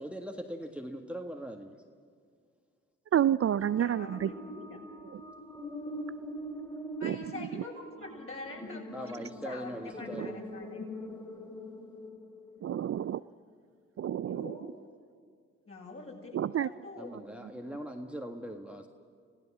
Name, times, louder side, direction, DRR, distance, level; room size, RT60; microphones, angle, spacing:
voice 1, 0.0-1.8 8.9-10.4 17.0-18.9, equal, 5° right, 3 dB, 1.7 m, -40 dB
voice 2, 3.1-4.3 5.1-5.2 7.0-7.2 10.1-10.3 12.6-13.2 14.0-14.6 16.3-16.7, right 10 dB, 45° right, 16 dB, 0.5 m, -29 dB
sound 1, 3.5-12.8, equal, 10° left, 4.2 m, -43 dB
voice 3, 3.8-4.8 7.0-11.0 14.2-14.7 15.7-17.1, left 3 dB, 40° left, -1 dB, 7.0 m, -45 dB
26.0 x 16.5 x 7.3 m, 2.1 s
supercardioid pair, 50°, 32 cm